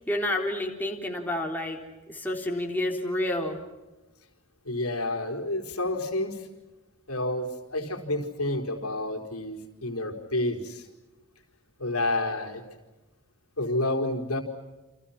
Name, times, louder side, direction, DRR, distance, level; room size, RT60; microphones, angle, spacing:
voice 1, 0.1-1.8 2.1-3.6, left 1 dB, 10° left, 0 dB, 3.8 m, -29 dB
voice 2, 4.6-6.5 7.1-10.9 11.8-12.6 13.6-14.4, left 1 dB, 80° left, 3 dB, 4.5 m, -29 dB
29.5 x 28.5 x 6.0 m, 1.1 s
head